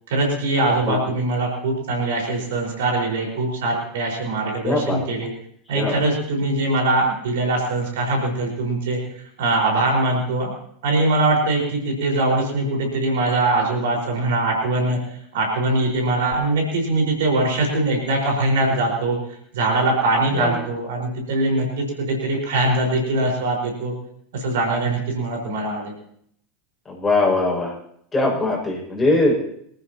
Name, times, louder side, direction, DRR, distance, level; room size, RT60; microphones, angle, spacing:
voice 1, 0.1-5.3 5.7-9.0 9.4-10.5 10.8-15.0 15.3-19.2 19.5-23.9 24.3-25.9, right 2 dB, 60° right, 0 dB, 5.0 m, -22 dB
voice 2, 4.6-5.0 5.7-6.0 20.3-20.5 26.9-27.7 28.1-29.4, left 2 dB, 15° left, -3 dB, 6.4 m, -21 dB
25.5 x 14.5 x 3.0 m, 0.68 s
figure-of-eight pair, 80°, 0 cm